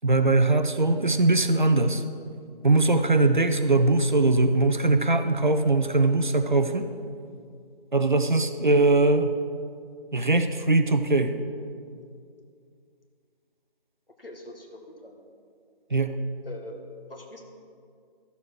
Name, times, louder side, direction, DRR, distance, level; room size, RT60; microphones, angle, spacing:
voice 1, 0.0-2.0 2.6-6.9 7.9-9.4 10.1-11.4 15.9-16.2, right 2 dB, 50° right, 8 dB, 0.7 m, -21 dB
voice 2, 14.2-15.2 16.5-16.8 17.1-17.4, left 1 dB, 65° left, 2 dB, 1.8 m, -42 dB
13.0 x 7.2 x 4.5 m, 2.3 s
figure-of-eight pair, 165°, 30 cm